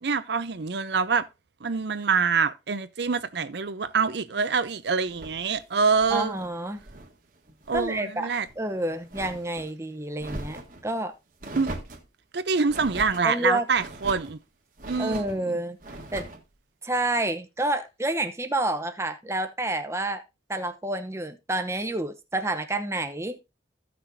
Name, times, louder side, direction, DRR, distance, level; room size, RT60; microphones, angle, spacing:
voice 1, 0.0-1.3 1.6-6.4 7.7-8.5 11.5-11.8 12.3-14.4 14.9-15.6, right 5 dB, 60° right, 0.6 m, -26 dB
sound 1, 5.1-7.1 7.5-8.0 8.4-9.7 10.2-10.8 11.4-12.1 12.7-13.3 13.7-14.4 14.8-15.4 15.8-16.4, right 1 dB, 45° right, 1.4 m, -40 dB
voice 2, 6.1-6.8 7.7-8.3 8.6-11.1 13.2-13.7 15.0-15.8 16.1-16.3 16.8-20.2 20.5-23.4, right 1 dB, 15° right, 0.8 m, -29 dB
15.0 x 6.0 x 2.7 m
head